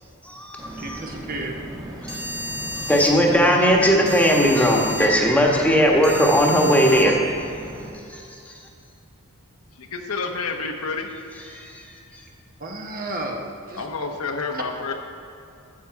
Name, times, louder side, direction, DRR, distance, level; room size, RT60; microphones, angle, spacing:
voice 1, 0.2-1.0 2.0-2.2 2.9-7.1 8.1-8.2 11.5-11.7, equal, 5° left, -1 dB, 1.3 m, -18 dB
sound 1, 0.6-7.9, equal, 15° right, 1.4 m, -33 dB
voice 2, 0.8-1.5 12.6-13.9 14.5-14.6, right 2 dB, 40° right, 1 dB, 1.1 m, -32 dB
voice 3, 9.8-11.1 13.8-14.9, left 4 dB, 70° left, 3 dB, 1.0 m, -29 dB
12.5 x 7.6 x 4.7 m, 2.5 s
head